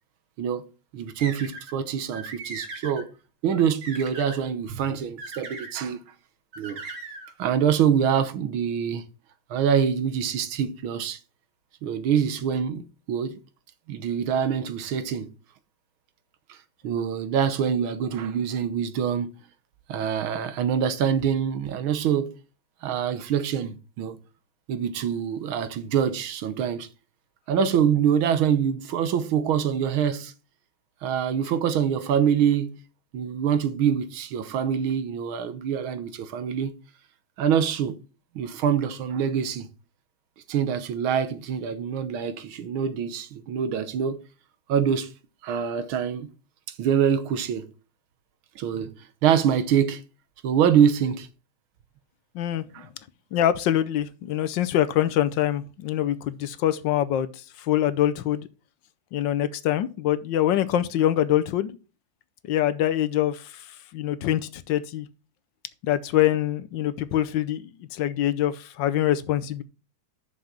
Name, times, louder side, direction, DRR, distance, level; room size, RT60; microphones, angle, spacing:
voice 1, 0.9-3.1 3.4-6.0 6.6-6.8 7.4-9.1 9.5-11.2 11.8-13.4 13.9-15.3 16.5-16.6 16.8-19.3 19.9-22.3 22.8-24.2 24.7-26.9 27.5-30.3 31.0-32.8 33.1-36.7 37.4-38.0 38.4-39.7 40.5-44.2 44.7-45.1 45.4-46.3 46.8-47.7 48.6-48.9 49.2-50.0 50.4-51.3 52.7-52.9, right 8 dB, 80° right, 1.8 m, -25 dB
sound 1, 1.2-1.7 2.1-3.0 3.5-4.4 5.2-5.8 6.5-7.3, right 3 dB, 55° right, 2.2 m, -38 dB
voice 2, 52.3-52.9 53.3-58.5 59.1-61.8 62.4-65.1 65.8-69.6, left 12 dB, 70° left, 1.3 m, -24 dB
6.5 x 5.7 x 7.3 m
omnidirectional pair, 2.2 m